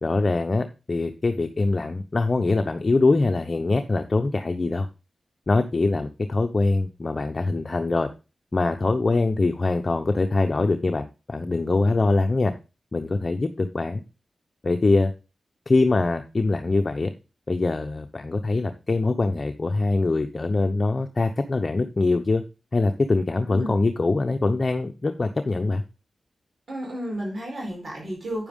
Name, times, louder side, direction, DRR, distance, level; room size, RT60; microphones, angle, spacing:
voice 1, 0.0-4.9 5.5-8.1 8.5-12.5 12.9-14.0 14.6-15.1 15.7-17.1 17.5-22.4 22.7-25.8, left 3 dB, 45° left, 7 dB, 0.8 m, -23 dB
voice 2, 23.4-23.8 26.7-28.5, equal, 60° right, -2 dB, 4.4 m, -32 dB
9.0 x 6.9 x 3.7 m, 0.30 s
cardioid pair, 45°, 0 cm